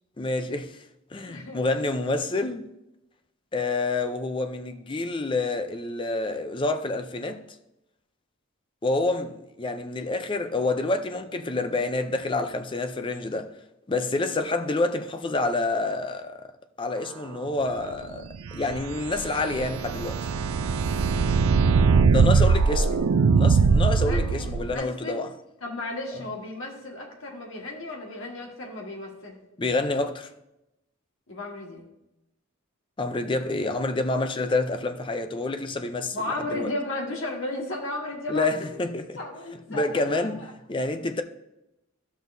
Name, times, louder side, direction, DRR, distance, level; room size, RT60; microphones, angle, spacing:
voice 1, 0.2-0.8 1.1-2.7 3.5-7.4 8.8-13.5 13.9-16.5 16.8-20.3 22.1-23.0 23.3-25.3 29.6-30.3 33.0-36.2 36.5-36.7 38.3-39.2 39.7-41.2, left 2 dB, 25° left, 0.5 m, -28 dB
voice 2, 1.3-1.6 21.9-23.0 23.9-25.2 25.6-29.4 31.3-31.8 36.1-40.5, left 2 dB, 65° left, 1.7 m, -35 dB
sound 1, 18.4-24.7, right 5 dB, 85° right, 0.4 m, -21 dB
12.5 x 6.1 x 2.7 m
head